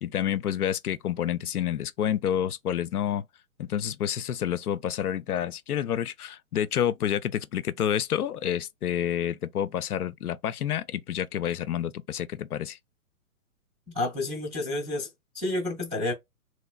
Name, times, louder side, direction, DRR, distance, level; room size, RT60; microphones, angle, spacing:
voice 1, 0.0-3.3 3.6-12.8, left 10 dB, 90° left, 0.6 m, -29 dB
voice 2, 13.9-15.1 15.3-16.1, left 2 dB, 5° right, 0.4 m, -29 dB
3.1 x 3.1 x 2.3 m
hypercardioid pair, 140°, 44 cm